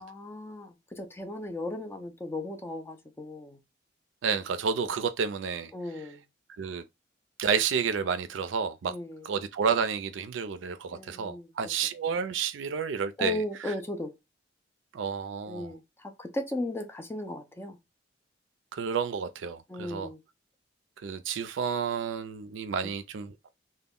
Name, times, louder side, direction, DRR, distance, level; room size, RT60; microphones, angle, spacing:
voice 1, 0.0-3.6 5.7-6.2 8.9-9.3 10.9-11.5 13.2-14.1 15.5-17.8 19.7-20.2 22.8-22.9, left 1 dB, 15° left, 0.4 m, -36 dB
voice 2, 4.2-5.7 6.6-6.8 7.4-8.9 9.2-13.4 14.9-15.7 18.7-20.1 21.0-23.4, right 6 dB, 80° right, 0.4 m, -30 dB
2.1 x 2.0 x 3.5 m
head